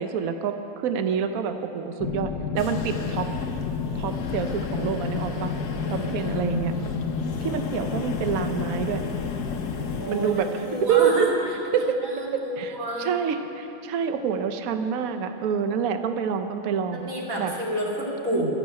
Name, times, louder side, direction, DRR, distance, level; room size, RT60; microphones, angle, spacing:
voice 1, 0.0-3.3 3.9-5.5 5.9-6.7 7.4-9.0 10.1-10.5 10.9-11.3 11.7-12.0 12.3-17.1 17.4-17.5 18.3-18.5, right 7 dB, 80° right, 8 dB, 0.7 m, -27 dB
sound 1, 2.0-10.0, left 6 dB, 80° left, 0.7 m, -30 dB
sound 2, 2.6-11.2, left 4 dB, 55° left, 1.4 m, -38 dB
voice 2, 5.9-6.7 10.0-10.3 10.6-11.3 11.8-13.1 16.9-18.5, equal, 40° right, -3 dB, 2.9 m, -30 dB
13.5 x 11.0 x 8.9 m, 3.0 s
omnidirectional pair, 2.3 m